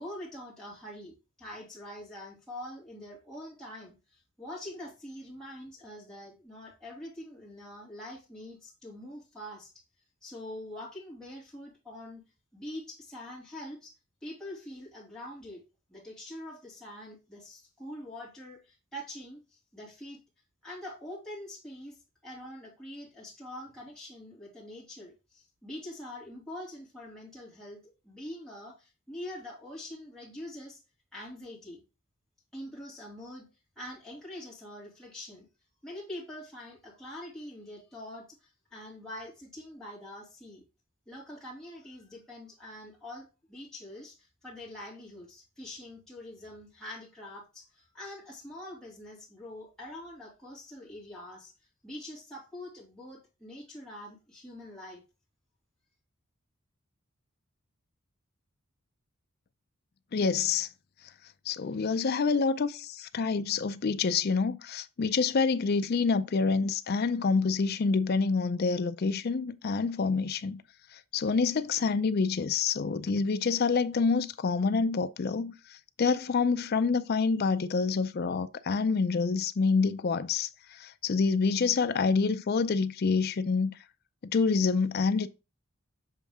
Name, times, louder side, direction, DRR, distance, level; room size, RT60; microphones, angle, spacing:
voice 1, 0.0-9.7 10.2-12.2 12.5-13.9 14.2-15.6 15.9-20.2 20.6-22.0 22.2-30.8 31.1-31.8 32.5-33.5 33.8-35.5 35.8-40.6 41.1-51.5 51.8-55.0, left 1 dB, 5° left, 2.4 m, -44 dB
voice 2, 60.1-60.7 61.5-70.6 70.9-83.8 84.2-85.3, left 4 dB, 45° left, 0.4 m, -27 dB
7.3 x 3.6 x 3.5 m
head